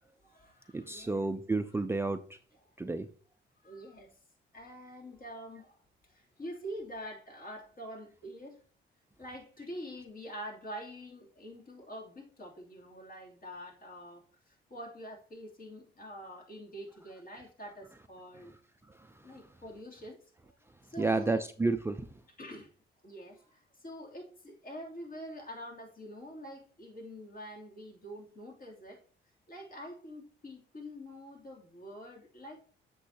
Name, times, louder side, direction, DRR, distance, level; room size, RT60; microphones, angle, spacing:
voice 1, 0.2-1.3 1.7-1.8 3.6-4.2 4.5-8.6 9.2-18.5 19.2-20.2 20.5-20.6 20.8-21.5 22.4-22.7 23.0-29.0 29.5-32.6, equal, 45° left, 3.0 m, -46 dB
voice 2, 0.7-2.2 2.8-3.1 21.0-22.1, right 3 dB, 10° right, 0.5 m, -30 dB
8.1 x 6.9 x 2.8 m
cardioid pair, 90°, 20 cm